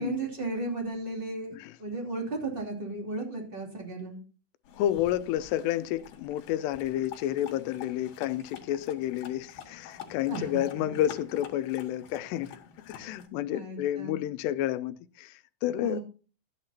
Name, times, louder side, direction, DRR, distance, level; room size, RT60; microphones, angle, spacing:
voice 1, 0.0-1.5 1.8-4.2 10.3-10.9 13.5-14.2 15.7-16.0, right 2 dB, 15° right, 2.1 m, -35 dB
sound 1, 4.6-13.3, left 8 dB, 70° left, 3.4 m, -47 dB
voice 2, 4.8-12.6 12.9-16.0, left 12 dB, 90° left, 2.8 m, -30 dB
13.5 x 9.6 x 2.8 m
omnidirectional pair, 4.7 m